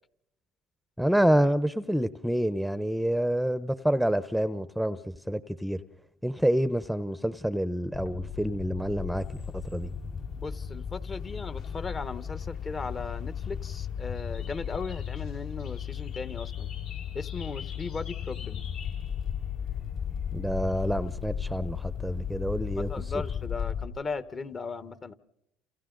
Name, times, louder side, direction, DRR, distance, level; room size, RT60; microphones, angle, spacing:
voice 1, 1.0-5.8 6.2-9.9 20.3-22.9, equal, ahead, 0.8 m, -27 dB
sound 1, 7.9-23.8, left 8 dB, 50° left, 4.3 m, -35 dB
sound 2, 9.2-23.5, left 5 dB, 70° left, 5.4 m, -50 dB
voice 2, 10.4-16.7 17.1-18.7 22.8-25.1, left 4 dB, 35° left, 1.2 m, -37 dB
29.0 x 28.5 x 3.9 m
supercardioid pair, 85°, 0 cm